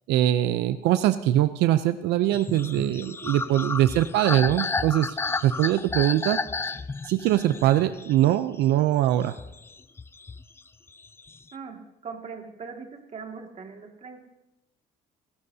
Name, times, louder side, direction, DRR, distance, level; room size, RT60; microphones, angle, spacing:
voice 1, 0.1-6.7 7.1-9.4, right 13 dB, 85° right, 12 dB, 0.5 m, -22 dB
sound 1, 2.3-8.8 9.2-10.6 10.9-11.5, left 4 dB, 15° left, 0.3 m, -32 dB
voice 2, 11.5-14.2, right 5 dB, 40° right, 3 dB, 2.1 m, -40 dB
25.5 x 12.5 x 2.8 m, 0.97 s
cardioid pair, 110°, 17 cm